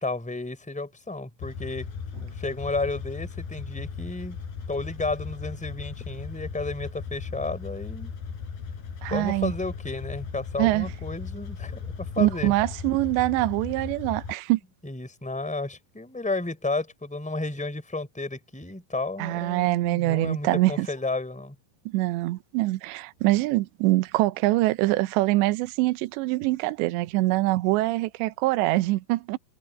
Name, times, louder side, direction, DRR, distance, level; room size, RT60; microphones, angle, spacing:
voice 1, 0.0-1.9 2.2-4.4 4.7-8.1 9.1-12.5 14.8-21.5, left 2 dB, ahead, 4.3 m, -32 dB
sound 1, 1.4-14.3, left 6 dB, 50° left, 6.2 m, -37 dB
voice 2, 9.0-9.5 10.6-10.9 12.2-14.6 19.2-20.9 21.9-29.4, right 19 dB, 75° right, 2.9 m, -24 dB
omnidirectional pair, 5.8 m